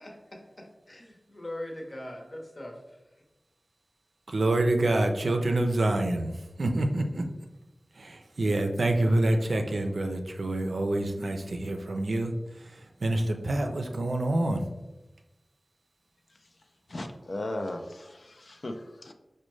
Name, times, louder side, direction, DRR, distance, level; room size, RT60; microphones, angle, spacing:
voice 1, 0.0-3.0, left 1 dB, 50° left, 0 dB, 0.8 m, -41 dB
voice 2, 4.3-7.2 7.9-14.6, right 1 dB, 80° right, 5 dB, 0.4 m, -27 dB
voice 3, 16.9-19.1, left 1 dB, 65° left, 5 dB, 0.4 m, -37 dB
5.0 x 2.1 x 3.1 m, 1.0 s
wide cardioid pair, 70°, 0 cm